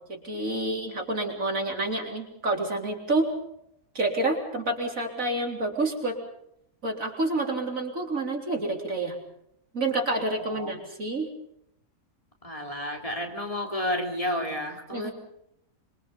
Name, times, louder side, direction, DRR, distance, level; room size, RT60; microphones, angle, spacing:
voice 1, 0.0-3.3 3.9-6.2 6.8-9.2 9.7-11.3 14.9-15.1, right 2 dB, 65° right, 1 dB, 4.2 m, -28 dB
voice 2, 12.4-15.1, left 1 dB, 25° left, 1 dB, 3.3 m, -31 dB
25.5 x 24.0 x 5.4 m, 0.73 s
omnidirectional pair, 1.5 m